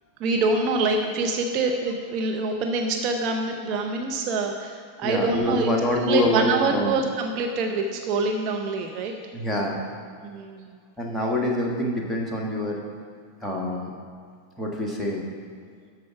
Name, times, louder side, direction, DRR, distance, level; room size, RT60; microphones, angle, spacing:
voice 1, 0.2-5.7 6.0-9.2 10.2-10.7, right 3 dB, 40° right, 3 dB, 0.7 m, -25 dB
voice 2, 5.0-6.9 9.3-9.8 11.0-12.8 13.4-13.9 14.6-15.2, left 1 dB, 5° left, -2 dB, 1.7 m, -25 dB
12.5 x 4.8 x 5.8 m, 2.2 s
figure-of-eight pair, 90°, 0 cm